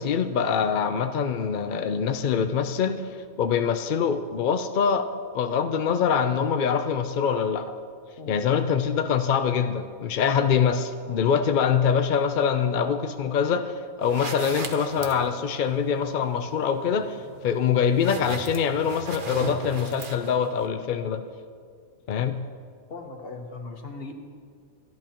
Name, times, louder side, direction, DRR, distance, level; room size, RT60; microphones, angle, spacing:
voice 1, 0.0-3.0 3.4-5.1 5.3-7.8 8.3-13.7 14.0-17.2 17.4-21.2 22.1-22.4, left 7 dB, 65° left, 8 dB, 0.5 m, -24 dB
sound 1, 14.0-20.7, right 4 dB, 40° right, 1.0 m, -39 dB
voice 2, 22.9-24.1, left 3 dB, 45° left, 3 dB, 1.4 m, -38 dB
27.0 x 10.5 x 3.0 m, 2.1 s
omnidirectional pair, 1.5 m